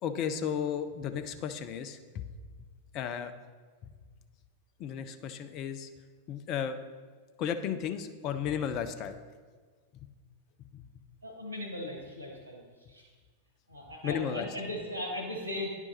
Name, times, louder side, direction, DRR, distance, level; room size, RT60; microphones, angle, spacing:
voice 1, 0.0-2.3 2.9-3.3 4.8-5.9 6.3-6.8 7.4-9.2 10.6-10.9 14.0-14.6, left 8 dB, 40° left, 9 dB, 0.5 m, -34 dB
voice 2, 11.2-12.6 12.9-13.1 13.7-15.7, left 1 dB, 85° left, 0 dB, 1.1 m, -38 dB
9.9 x 4.5 x 4.2 m, 1.5 s
figure-of-eight pair, 90°, 0 cm